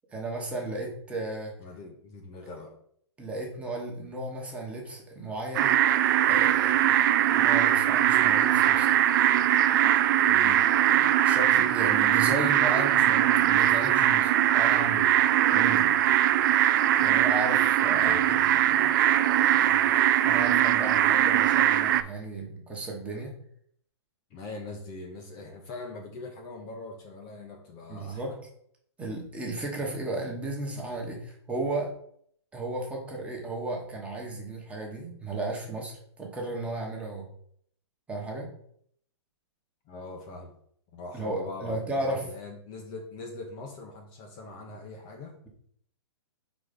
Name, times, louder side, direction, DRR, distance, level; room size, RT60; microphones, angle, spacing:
voice 1, 0.1-1.5 3.2-5.8 6.2-7.0 7.3-9.0 11.0-15.1 15.5-16.0 17.0-18.5 18.8-18.9 19.7-19.8 20.2-23.3 27.9-28.4 29.0-31.9 32.5-37.2 38.1-38.5 41.1-42.3, right 2 dB, 10° right, -1 dB, 1.2 m, -34 dB
voice 2, 1.6-2.8 10.3-10.7 17.9-19.3 24.3-28.3 39.9-40.6 40.9-45.4, left 3 dB, 30° left, 2 dB, 0.9 m, -42 dB
sound 1, 5.5-22.0, right 11 dB, 45° right, 0.4 m, -21 dB
4.4 x 4.1 x 5.2 m, 0.65 s
hypercardioid pair, 145°, 15 cm